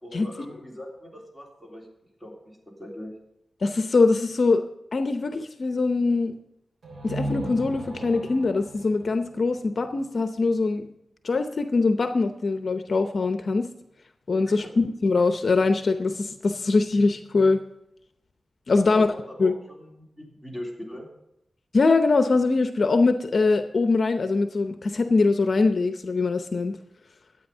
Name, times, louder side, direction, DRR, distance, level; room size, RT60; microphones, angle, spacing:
voice 1, 0.0-1.9 2.2-3.1 14.5-14.7 18.8-21.1, equal, 10° right, -1 dB, 3.4 m, -41 dB
voice 2, 3.6-4.6 4.9-6.3 7.0-10.9 11.2-13.7 14.3-17.6 18.7-19.1 19.4-19.5 21.7-26.8, left 3 dB, 60° left, 8 dB, 0.7 m, -22 dB
sound 1, 6.8-10.5, right 1 dB, 75° right, 3.2 m, -36 dB
12.5 x 8.6 x 5.5 m, 0.81 s
wide cardioid pair, 85°, 0 cm